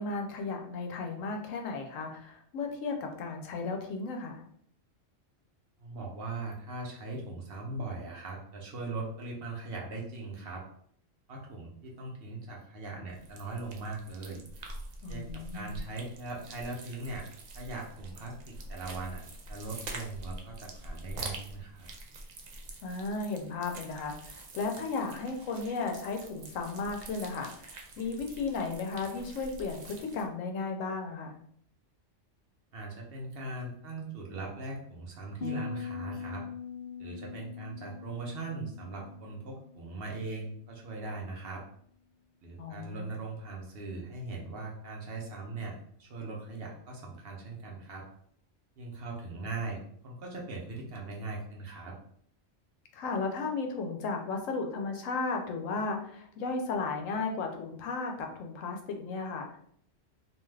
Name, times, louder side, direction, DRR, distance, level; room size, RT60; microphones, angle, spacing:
voice 1, 0.0-4.4 15.0-15.8 22.8-31.4 42.6-43.1 52.9-59.6, left 4 dB, 90° left, 3 dB, 1.0 m, -35 dB
voice 2, 5.8-10.6 11.3-14.4 15.1-17.2 17.5-19.2 19.5-21.9 32.7-36.4 37.0-41.6 42.4-48.0 48.8-49.8 50.0-51.9, right 3 dB, 55° right, -1 dB, 0.8 m, -40 dB
sound 1, 13.1-30.3, right 2 dB, 80° right, 0.3 m, -46 dB
Piano, 35.4-41.0, left 7 dB, 65° left, 0.4 m, -42 dB
2.6 x 2.3 x 3.2 m, 0.64 s
omnidirectional pair, 1.3 m